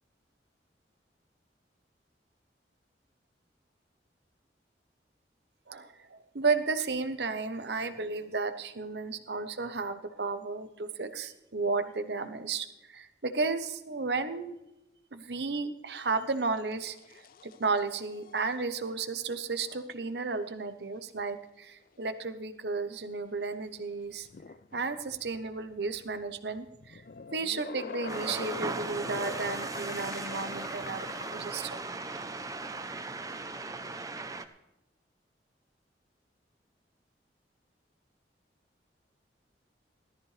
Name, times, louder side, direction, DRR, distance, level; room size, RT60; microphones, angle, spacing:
voice 1, 5.7-14.6 15.1-24.3 24.7-27.0 27.3-31.1 31.3-31.8, right 4 dB, 70° right, 10 dB, 1.0 m, -33 dB
sound 1, 16.4-18.6 22.9-23.0 24.1-31.4, left 5 dB, 50° left, 0.4 m, -45 dB
sound 2, 28.1-34.5, right 3 dB, 20° right, 0.7 m, -37 dB
17.5 x 13.5 x 3.3 m, 0.95 s
head